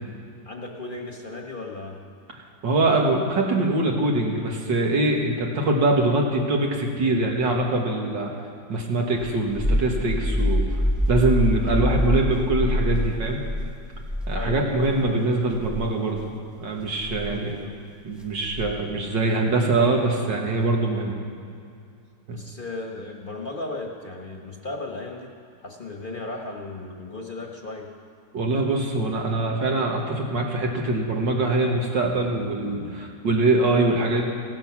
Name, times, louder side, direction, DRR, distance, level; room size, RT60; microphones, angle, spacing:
voice 1, 0.4-2.0 11.6-11.9 14.3-14.7 17.2-17.8 22.3-25.3 25.6-27.9, left 2 dB, 30° left, 1 dB, 1.3 m, -36 dB
voice 2, 2.6-8.3 8.7-10.7 11.1-13.4 14.3-16.3 16.6-17.6 18.0-21.1 22.3-22.4 28.3-34.3, right 2 dB, 85° right, 0 dB, 2.5 m, -23 dB
sound 1, 9.2-15.1 15.5-15.9 17.0-17.3 18.5-18.9, left 1 dB, ahead, 0.8 m, -25 dB
16.0 x 13.5 x 6.1 m, 2.4 s
omnidirectional pair, 1.9 m